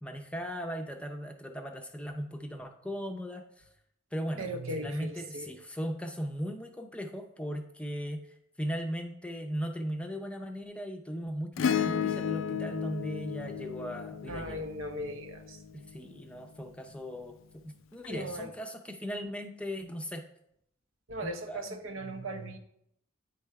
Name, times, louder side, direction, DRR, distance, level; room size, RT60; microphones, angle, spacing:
voice 1, 0.0-3.7 4.1-4.5 4.7-14.7 15.7-17.3 17.6-20.2 21.2-21.8, equal, 5° left, 4 dB, 0.5 m, -38 dB
voice 2, 4.4-5.5 14.3-15.6 18.1-18.5 21.1-22.6, right 1 dB, 85° right, 5 dB, 0.9 m, -38 dB
Acoustic guitar / Strum, 11.6-16.2 18.0-18.1, left 7 dB, 80° left, 0.3 m, -33 dB
9.3 x 3.3 x 4.6 m, 0.75 s
head